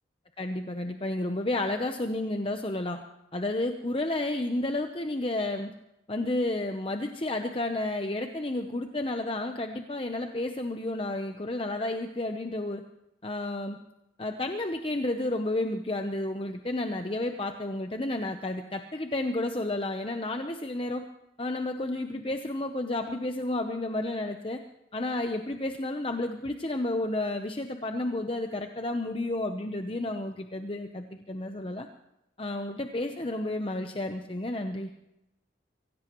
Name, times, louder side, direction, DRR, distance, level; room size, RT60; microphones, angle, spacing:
voice 1, 0.4-3.0 3.3-5.7 6.1-12.8 13.2-13.8 14.2-21.1 21.4-24.6 24.9-31.9 32.4-34.9, left 2 dB, 30° left, 6 dB, 0.8 m, -31 dB
24.0 x 16.5 x 3.1 m, 0.87 s
head